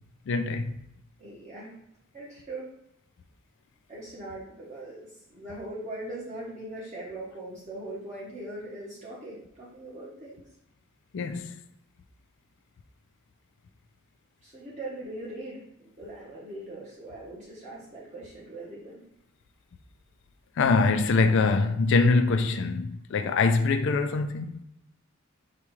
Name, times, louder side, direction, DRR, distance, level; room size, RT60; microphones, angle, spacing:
voice 1, 0.3-0.7 11.1-11.5 20.6-24.6, left 4 dB, 55° left, 0.3 m, -24 dB
voice 2, 1.2-1.8 2.1-2.7 3.9-10.4 14.4-19.0, right 1 dB, 35° right, 0.9 m, -40 dB
6.7 x 2.3 x 3.1 m
head